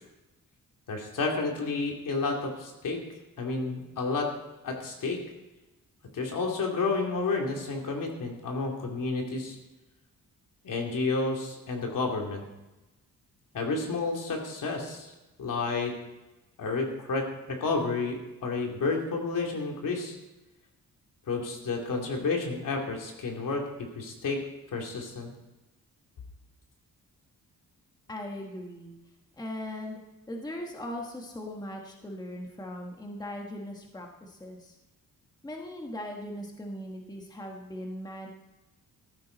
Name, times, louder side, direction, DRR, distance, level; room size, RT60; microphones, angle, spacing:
voice 1, 0.9-3.0 3.4-4.3 4.6-5.2 6.1-9.6 10.6-12.4 13.5-15.1 15.4-16.0 16.6-20.2 21.3-24.4 24.7-25.3, left 3 dB, 65° left, 1 dB, 2.8 m, -30 dB
voice 2, 28.1-29.0 29.4-30.0 30.3-34.8 35.4-38.3, left 1 dB, 10° left, 1 dB, 1.3 m, -39 dB
14.5 x 14.0 x 4.0 m, 1.1 s
wide cardioid pair, 160°, 35 cm